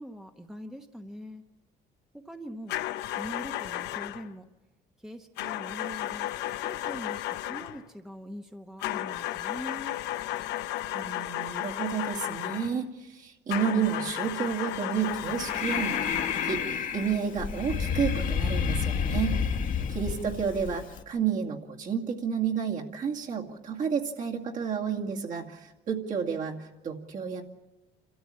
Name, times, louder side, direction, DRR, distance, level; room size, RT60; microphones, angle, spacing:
voice 1, 0.0-1.4 2.1-2.7 3.2-4.4 5.0-6.3 6.5-9.9 19.5-19.7, equal, 5° right, 5 dB, 1.0 m, -42 dB
sound 1, 2.7-4.3 5.4-7.8 8.8-12.8 13.5-16.7, left 14 dB, 85° left, 0.7 m, -34 dB
voice 2, 10.9-16.1 16.4-19.3 19.9-27.4, right 7 dB, 50° right, 0 dB, 2.3 m, -31 dB
Breathing, 15.0-21.0, left 6 dB, 50° left, 1.4 m, -30 dB
28.0 x 13.5 x 8.5 m, 1.1 s
cardioid pair, 110°, 17 cm